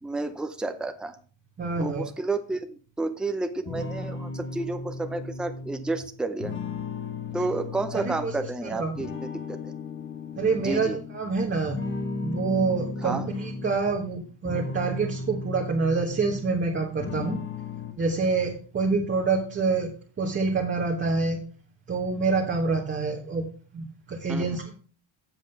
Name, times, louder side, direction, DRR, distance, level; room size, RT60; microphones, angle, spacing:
voice 1, 0.0-1.2 1.8-6.6 7.3-9.7 10.6-11.0 13.0-13.3 24.3-24.6, right 3 dB, ahead, 8 dB, 0.6 m, -31 dB
voice 2, 1.6-2.1 7.9-8.3 8.7-8.9 10.4-11.8 12.2-17.4 18.0-19.9 20.2-21.4 21.9-23.4 23.7-24.8, right 4 dB, 25° right, -1 dB, 1.4 m, -26 dB
sound 1, 3.7-8.6 8.9-11.2 11.7-13.8 14.3-16.7 17.0-17.9, left 3 dB, 25° left, 1.2 m, -35 dB
7.6 x 7.5 x 5.3 m, 0.40 s
cardioid pair, 155°, 49 cm